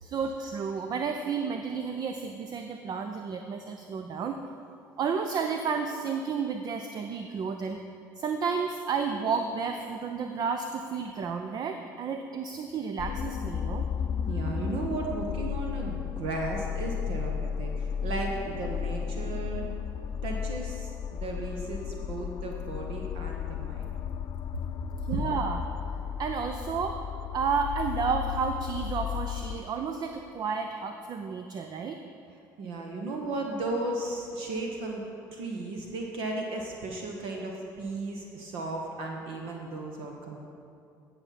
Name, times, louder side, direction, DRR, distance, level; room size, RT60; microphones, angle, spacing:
voice 1, 0.0-4.4 5.0-7.8 8.2-13.9 25.0-25.6 26.2-27.0 27.3-32.0, right 5 dB, 40° right, 6 dB, 0.6 m, -31 dB
sound 1, 13.0-29.6, left 8 dB, 40° left, 0.3 m, -34 dB
voice 2, 14.3-19.7 20.2-23.9 32.6-35.0 35.3-40.4, right 2 dB, 55° right, 1 dB, 1.1 m, -35 dB
17.0 x 5.9 x 4.1 m, 2.6 s
figure-of-eight pair, 55°, 11 cm